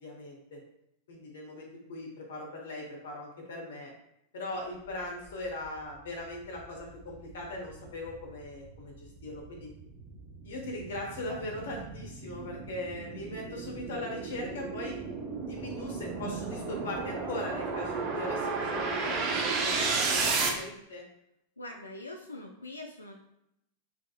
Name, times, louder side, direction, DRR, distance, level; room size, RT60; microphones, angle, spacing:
voice 1, 0.0-0.6 1.1-3.9 4.3-9.7 10.4-15.0 15.4-21.0, left 1 dB, 60° left, -1 dB, 0.9 m, -39 dB
sound 1, 5.8-5.9 6.4-20.5, right 4 dB, 35° right, 0.6 m, -34 dB
voice 2, 21.6-23.1, left 2 dB, 80° left, 2 dB, 0.3 m, -43 dB
4.3 x 2.9 x 2.3 m, 0.81 s
figure-of-eight pair, 90°, 0 cm